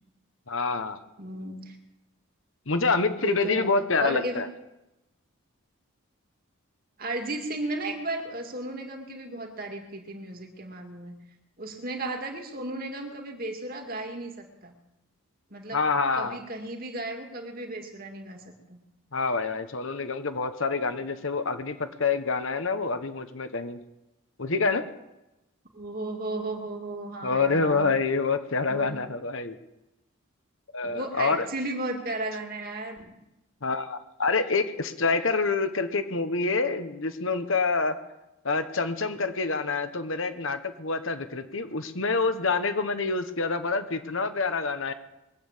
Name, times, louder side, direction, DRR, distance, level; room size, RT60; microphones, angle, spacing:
voice 1, 0.5-1.0 2.7-4.5 15.7-16.4 19.1-23.8 24.4-24.8 27.2-29.6 30.7-31.5 33.6-38.0 38.4-44.9, left 4 dB, 65° left, 9 dB, 1.3 m, -27 dB
voice 2, 1.2-1.8 3.2-3.7 4.0-4.4 7.0-11.2 11.6-14.7 15.5-15.8 16.2-18.8 25.7-27.9 28.7-28.9 30.8-33.1, right 2 dB, 40° right, 3 dB, 2.3 m, -34 dB
22.0 x 8.8 x 7.4 m, 0.94 s
head